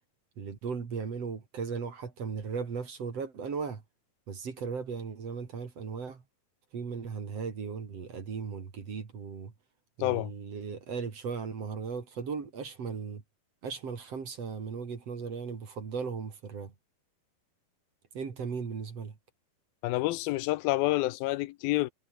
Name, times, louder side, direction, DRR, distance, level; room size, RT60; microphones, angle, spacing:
voice 1, 0.4-3.8 4.3-6.2 6.7-9.5 10.0-13.2 13.6-16.7 18.1-19.2, right 5 dB, 45° right, 3.8 m, -37 dB
voice 2, 19.8-21.9, left 18 dB, 85° left, 2.5 m, -28 dB
omnidirectional pair, 4.3 m